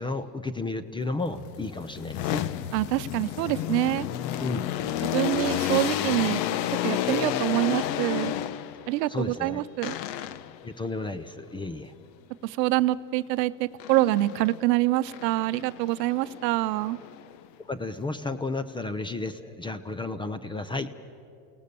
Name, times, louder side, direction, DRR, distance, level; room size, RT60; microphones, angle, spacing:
voice 1, 0.0-2.5 4.4-4.6 9.1-9.6 10.6-11.9 17.7-20.9, left 3 dB, 10° left, 12 dB, 0.5 m, -32 dB
sound 1, 1.3-8.9 9.8-10.6 13.8-14.6 15.1-17.5, left 11 dB, 85° left, 1.0 m, -31 dB
voice 2, 2.7-4.1 5.0-6.4 6.8-8.3 8.9-10.0 12.4-17.0, right 16 dB, 80° right, 15 dB, 0.8 m, -26 dB
28.5 x 18.5 x 6.8 m, 2.6 s
supercardioid pair, 125°, 49 cm